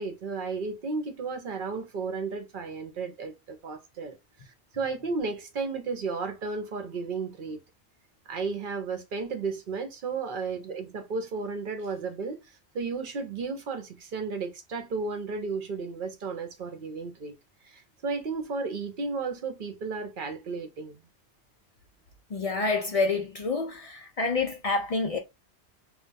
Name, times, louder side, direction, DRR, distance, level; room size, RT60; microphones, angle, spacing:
voice 1, 0.0-4.2 4.5-7.6 8.3-12.4 12.7-17.4 17.6-21.0, right 4 dB, 55° right, 0.7 m, -33 dB
voice 2, 22.3-25.2, left 3 dB, 65° left, 0.3 m, -28 dB
2.2 x 2.2 x 3.8 m
omnidirectional pair, 1.2 m